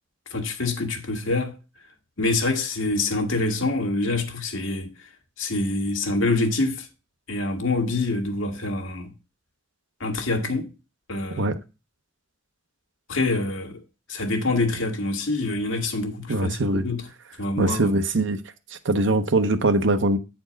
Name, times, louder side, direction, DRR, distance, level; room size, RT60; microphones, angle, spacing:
voice 1, 0.3-1.6 2.2-4.9 5.4-6.9 7.3-9.1 10.0-10.7 11.1-11.6 13.1-13.8 14.1-17.0 17.4-17.9, left 2 dB, 75° left, 1.6 m, -26 dB
voice 2, 16.3-16.9 17.6-18.4 18.7-20.2, right 2 dB, 60° right, 0.8 m, -22 dB
8.7 x 4.4 x 5.1 m
head